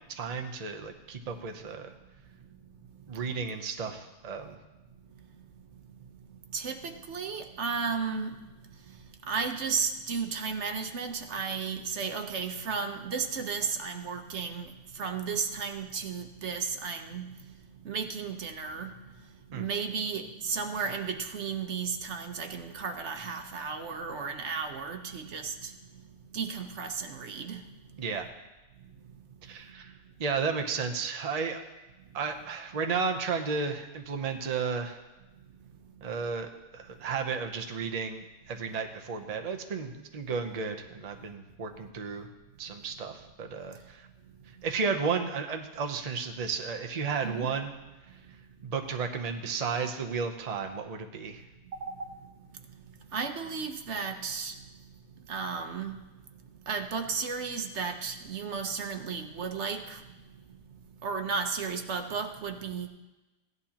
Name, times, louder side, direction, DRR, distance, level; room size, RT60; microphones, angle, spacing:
voice 1, 0.1-1.9 3.1-4.6 19.5-19.6 28.0-28.3 29.4-29.9 30.2-31.6 32.1-35.0 36.0-42.3 42.6-44.1 44.6-47.7 48.6-51.4, right 5 dB, 35° right, 4 dB, 0.8 m, -33 dB
voice 2, 6.5-8.3 9.3-17.3 17.8-18.9 19.5-25.7 26.3-27.6 47.2-47.5 51.7-52.1 53.1-54.5 55.3-56.0 56.7-60.0 61.0-62.9, right 5 dB, 70° right, 5 dB, 1.2 m, -34 dB
16.0 x 11.0 x 2.9 m, 1.1 s
omnidirectional pair, 1.3 m